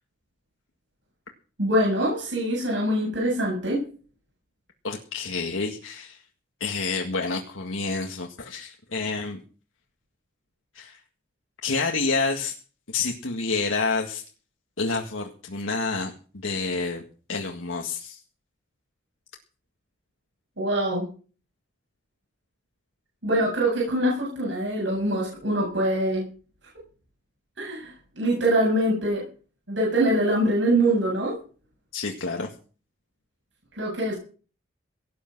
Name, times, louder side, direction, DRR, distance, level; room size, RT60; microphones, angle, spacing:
voice 1, 1.6-3.8 20.6-21.1 23.2-26.3 27.6-29.2 29.7-31.3 33.8-34.1, right 1 dB, 70° right, -3 dB, 7.9 m, -24 dB
voice 2, 4.8-6.2 6.6-9.4 10.8-11.0 11.6-12.5 12.9-14.2 14.8-16.1 16.4-17.0 17.3-18.2 31.9-32.5, left 4 dB, 90° left, 2 dB, 1.9 m, -28 dB
18.0 x 10.5 x 6.1 m, 0.40 s
head